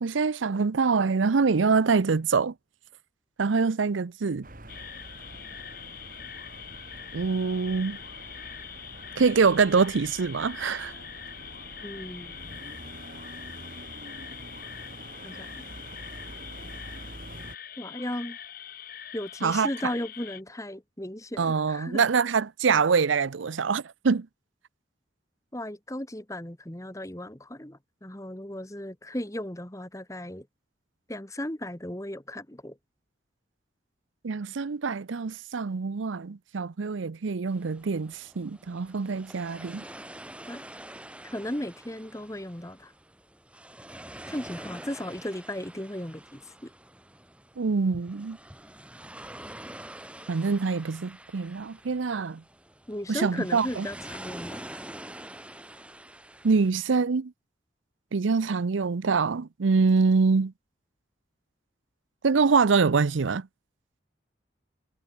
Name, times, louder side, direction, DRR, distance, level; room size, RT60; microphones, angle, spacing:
voice 1, 0.0-2.5 3.4-4.5 7.1-8.0 9.2-10.9 19.4-19.7 21.4-24.3 34.2-39.8 47.6-48.4 50.3-52.4 53.1-53.9 56.4-57.3 58.1-60.5 62.2-63.5, right 5 dB, 85° right, 0.6 m, -25 dB
sound 1, 4.4-17.6, right 1 dB, 45° right, 4.2 m, -46 dB
sound 2, 4.7-20.4, left 10 dB, 50° left, 2.6 m, -43 dB
voice 2, 11.8-12.6 15.2-15.6 17.8-18.4 19.1-22.0 25.5-30.4 31.1-32.7 40.5-40.6 41.3-42.9 44.3-46.7 52.9-54.8, left 1 dB, 15° left, 1.7 m, -36 dB
sound 3, 37.5-56.7, right 1 dB, 5° right, 4.9 m, -46 dB
head